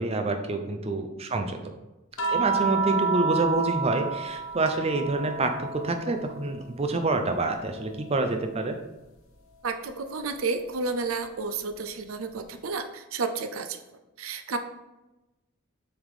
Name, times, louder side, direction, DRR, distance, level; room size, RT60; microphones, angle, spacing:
voice 1, 0.0-1.6 2.3-8.8, right 2 dB, 30° right, 6 dB, 0.5 m, -27 dB
sound 1, 2.2-6.7 7.0-8.7 10.2-10.3, right 5 dB, 70° left, 0.7 m, -31 dB
voice 2, 9.6-13.8 14.2-14.6, right 4 dB, 75° right, 7 dB, 0.6 m, -31 dB
7.2 x 3.5 x 4.9 m, 1.0 s
head